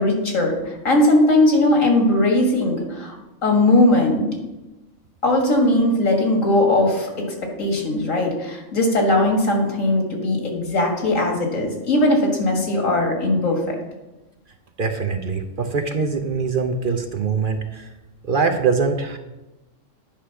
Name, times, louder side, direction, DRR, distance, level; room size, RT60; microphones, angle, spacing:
voice 1, 0.0-3.2 3.4-4.3 5.2-13.8, left 1 dB, 85° left, 1 dB, 2.2 m, -19 dB
voice 2, 14.8-17.9 18.3-19.2, right 5 dB, 50° right, 5 dB, 0.8 m, -23 dB
10.5 x 5.0 x 5.8 m, 1.0 s
omnidirectional pair, 1.3 m